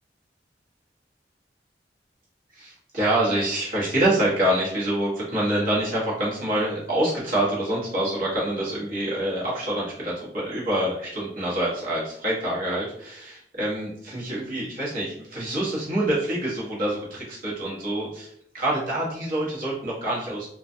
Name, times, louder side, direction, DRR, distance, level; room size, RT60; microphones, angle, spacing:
voice 1, 2.5-20.5, right 1 dB, 55° right, -6 dB, 1.0 m, -26 dB
2.3 x 2.2 x 2.5 m, 0.69 s
head